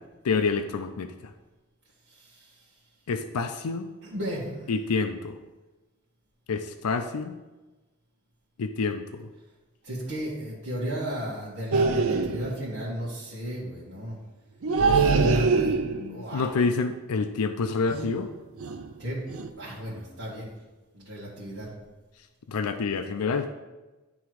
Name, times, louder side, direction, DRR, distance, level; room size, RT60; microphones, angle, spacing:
voice 1, 0.2-1.1 3.1-3.9 4.7-5.3 6.5-7.4 8.6-9.3 15.8-18.3 22.5-23.5, left 4 dB, 90° left, 8 dB, 0.5 m, -28 dB
voice 2, 2.1-2.5 4.0-4.7 9.8-14.2 14.8-15.8 16.1-16.5 19.0-19.2 19.5-20.5 20.9-21.7, equal, 55° right, -10 dB, 1.7 m, -34 dB
sound 1, 11.7-12.6 14.6-16.2 17.9-18.2 18.6-18.9 19.3-19.5, right 4 dB, 70° right, 0.5 m, -24 dB
10.5 x 3.5 x 4.7 m, 1.1 s
head